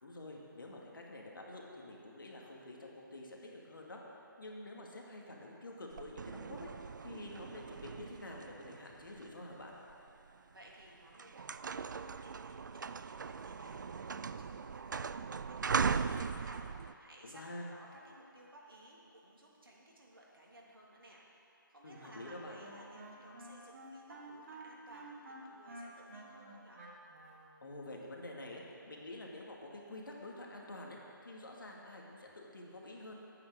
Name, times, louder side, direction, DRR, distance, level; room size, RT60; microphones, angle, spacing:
voice 1, 0.0-4.0 4.4-9.7 17.2-17.7 21.8-22.6 27.6-33.1, left 1 dB, 70° left, -1 dB, 2.3 m, -48 dB
sound 1, 5.9-10.1 10.7-10.9 11.1-16.9, right 5 dB, 60° right, 0.4 m, -39 dB
voice 2, 10.5-26.8, right 1 dB, 85° right, -3 dB, 2.9 m, -58 dB
Wind instrument woodwind instrument, 21.9-27.5, right 2 dB, 45° right, 1.9 m, -51 dB
9.9 x 8.9 x 6.9 m, 2.9 s
figure-of-eight pair, 150°, 12 cm